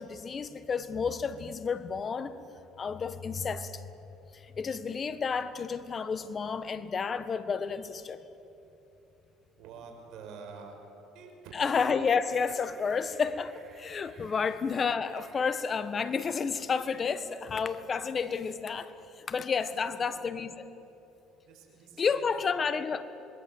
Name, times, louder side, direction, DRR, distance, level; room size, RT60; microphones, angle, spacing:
voice 1, 0.0-2.3 2.8-3.8 4.3-8.2 11.5-20.7 22.0-23.0, left 5 dB, 35° left, 12 dB, 1.4 m, -31 dB
voice 2, 9.5-10.8 11.1-11.6 14.2-14.3 19.9-20.1 21.4-22.5, right 5 dB, 70° right, 3 dB, 6.0 m, -48 dB
sound 1, 11.5-15.5, right 5 dB, 40° right, 3.7 m, -58 dB
26.5 x 22.0 x 8.0 m, 2.9 s
supercardioid pair, 85°, 0 cm